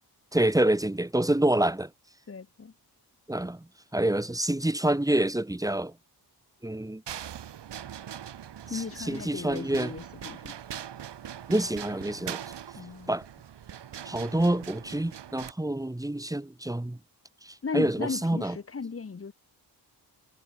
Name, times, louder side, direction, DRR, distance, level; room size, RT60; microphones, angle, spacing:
voice 1, 0.3-1.9 3.3-3.6 3.9-5.9 6.6-7.0 8.7-9.9 11.5-12.4 13.1-13.3 14.1-17.0 17.5-18.6, right 1 dB, 10° right, 5.5 m, -27 dB
voice 2, 2.3-2.7 8.7-10.5 12.7-13.1 17.6-19.3, left 5 dB, 35° left, 5.6 m, -36 dB
sound 1, 7.1-15.5, right 10 dB, 80° right, 8.0 m, -42 dB
wide cardioid pair, 160°, 41 cm